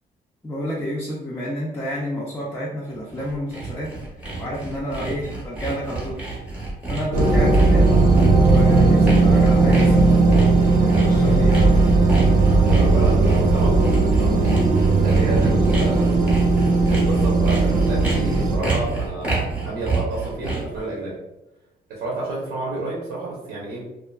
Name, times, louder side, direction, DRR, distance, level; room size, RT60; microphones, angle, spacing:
voice 1, 0.4-3.9 4.4-6.2 6.9-8.0 8.4-10.2 10.7-11.8 14.8-15.5, equal, 15° left, -5 dB, 0.4 m, -30 dB
Sawing, 2.9-20.8, right 3 dB, 5° right, 0.8 m, -28 dB
sound 1, 7.1-18.6, right 3 dB, 50° right, 0.4 m, -17 dB
voice 2, 12.6-16.2 16.5-21.2 21.9-23.9, right 2 dB, 80° right, -5 dB, 0.8 m, -30 dB
2.6 x 2.4 x 2.2 m, 0.92 s
cardioid pair, 155°, 17 cm